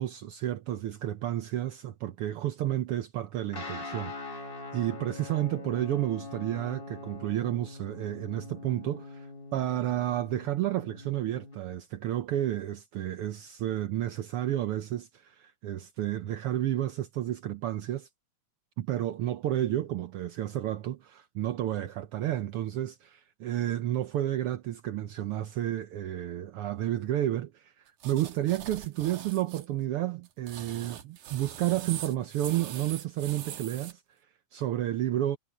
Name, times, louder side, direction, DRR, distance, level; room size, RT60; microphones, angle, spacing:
voice 1, 0.0-18.1 18.8-27.7 28.0-34.0 34.5-35.4, right 13 dB, 70° right, 1.3 m, -31 dB
Guitar, 3.5-11.6, left 3 dB, 30° left, 1.1 m, -43 dB
sound 1, 28.0-29.7 30.3-33.9, right 10 dB, 90° right, 2.9 m, -42 dB
omnidirectional pair, 3.5 m